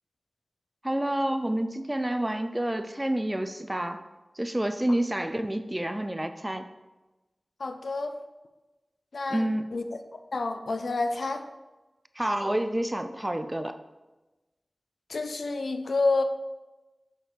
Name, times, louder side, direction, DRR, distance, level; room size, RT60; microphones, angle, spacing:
voice 1, 0.8-4.0 4.4-6.6 9.3-9.7 12.2-13.8, right 1 dB, 15° right, 9 dB, 0.4 m, -28 dB
voice 2, 7.6-8.2 9.1-10.0 10.3-11.5 15.1-16.2, left 3 dB, 85° left, 7 dB, 0.5 m, -29 dB
6.4 x 6.0 x 3.4 m, 1.1 s
wide cardioid pair, 80°, 0 cm